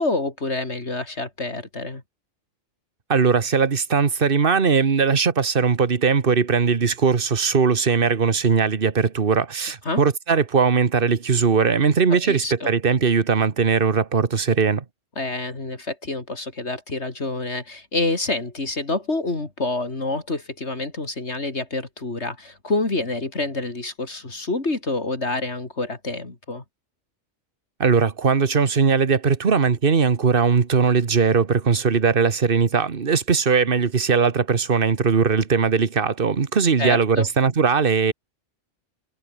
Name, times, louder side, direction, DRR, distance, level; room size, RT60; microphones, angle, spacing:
voice 1, 0.0-2.0 9.9-10.0 12.1-12.7 15.2-26.6 36.8-37.3, left 2 dB, 60° left, 3.7 m, -27 dB
voice 2, 3.1-14.8 27.8-38.1, right 5 dB, 45° right, 1.5 m, -19 dB
omnidirectional pair, 1.3 m